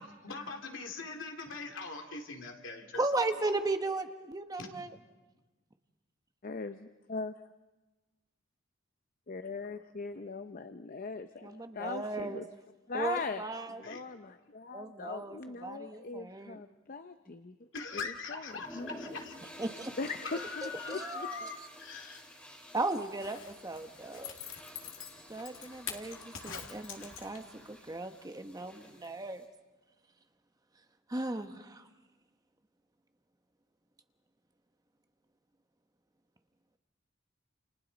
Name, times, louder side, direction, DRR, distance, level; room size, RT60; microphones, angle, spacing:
voice 1, 0.0-3.5 4.6-4.7 13.8-14.1 17.7-19.4 20.1-22.2, left 4 dB, 70° left, 2 dB, 2.6 m, -42 dB
voice 2, 3.0-4.9 11.4-12.4 12.9-13.8 14.7-16.6 19.6-19.9 20.6-21.5 22.7-24.3 25.3-29.4 31.1-31.9, right 2 dB, 20° right, 7 dB, 1.0 m, -36 dB
voice 3, 6.4-7.5 9.3-12.5 12.9-13.5 13.8-17.7 17.9-18.0 18.8-18.9 20.0-21.3, left 4 dB, 45° left, 9 dB, 0.6 m, -40 dB
sound 1, 18.5-29.4, equal, 5° left, 4.4 m, -51 dB
Zipper (clothing), 23.0-27.6 28.0-28.1, left 8 dB, 85° left, 2.3 m, -45 dB
29.0 x 29.0 x 4.1 m, 1.2 s
head